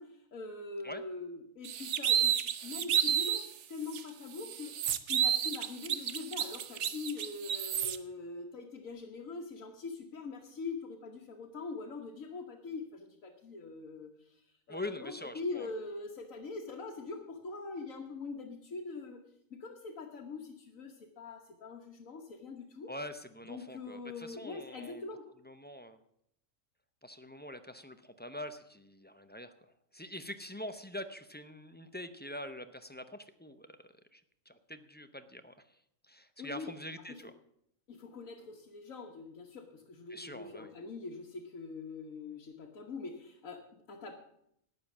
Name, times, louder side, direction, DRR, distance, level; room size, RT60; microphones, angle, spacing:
voice 1, 0.0-2.4 2.6-19.2 19.5-22.9 23.4-25.3 36.4-36.7 37.1-37.2 37.9-44.2, left 3 dB, 85° left, 1 dB, 1.7 m, -43 dB
sound 1, 1.6-3.5 3.9-4.0 4.4-8.0, right 9 dB, 65° right, 1.0 m, -31 dB
voice 2, 14.7-15.7 22.9-25.0 25.4-26.0 27.0-35.8 36.1-37.3 40.1-40.7, left 1 dB, 10° left, 9 dB, 0.4 m, -45 dB
12.0 x 9.6 x 7.3 m, 0.74 s
omnidirectional pair, 1.4 m